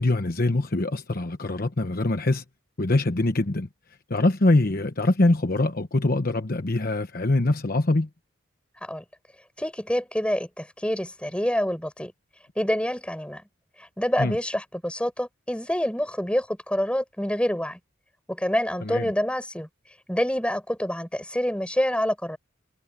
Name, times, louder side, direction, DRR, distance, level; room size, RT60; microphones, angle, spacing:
voice 1, 0.0-2.4 2.8-3.7 4.1-8.1 14.2-14.4 18.8-19.0, left 2 dB, 45° left, 1.1 m, -23 dB
voice 2, 9.6-12.1 12.6-13.4 14.0-17.8 18.3-19.7 20.1-22.4, equal, 5° left, 6.5 m, -27 dB
head